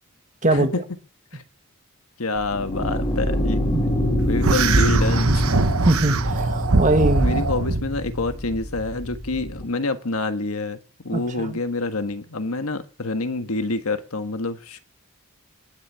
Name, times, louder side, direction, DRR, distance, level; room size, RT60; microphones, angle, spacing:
voice 1, 0.5-0.8 1.3-1.4 2.2-3.6 4.2-5.5 7.2-14.8, left 3 dB, 85° left, 9 dB, 1.5 m, -27 dB
sound 1, 2.4-9.6, equal, 25° left, 2.4 m, -26 dB
sound 2, 4.4-7.9, right 3 dB, 85° right, 1.1 m, -21 dB
voice 2, 5.8-7.4 11.1-11.6, right 2 dB, 35° right, 7 dB, 1.7 m, -21 dB
19.5 x 6.6 x 8.4 m, 0.41 s
head